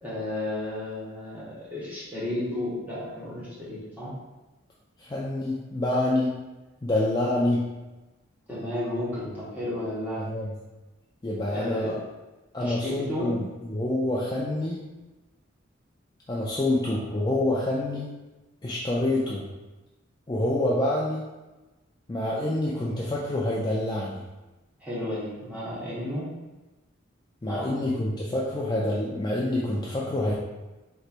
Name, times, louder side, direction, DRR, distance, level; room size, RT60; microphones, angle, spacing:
voice 1, 0.0-4.1 8.5-10.3 11.5-11.9 12.6-13.3 24.8-26.3 27.4-27.8, left 1 dB, 10° right, -10 dB, 1.2 m, -33 dB
voice 2, 5.0-6.4 6.8-7.7 10.2-10.5 11.2-12.0 12.5-13.4 13.7-14.9 16.3-18.1 18.6-19.5 20.3-21.3 22.1-24.2 27.4-30.3, left 1 dB, 20° left, -6 dB, 0.4 m, -27 dB
4.2 x 3.2 x 2.5 m, 1.1 s
head